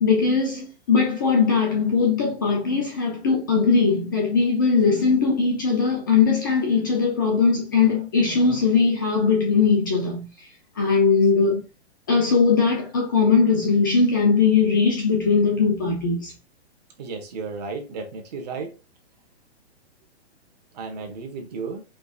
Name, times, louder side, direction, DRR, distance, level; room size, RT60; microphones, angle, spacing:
voice 1, 0.0-10.5 10.8-11.6 12.1-16.3, left 5 dB, 20° left, 0.5 m, -20 dB
voice 2, 17.0-18.8 20.7-21.8, right 4 dB, 35° right, 1.2 m, -34 dB
5.0 x 3.9 x 2.4 m
hypercardioid pair, 170°, 33 cm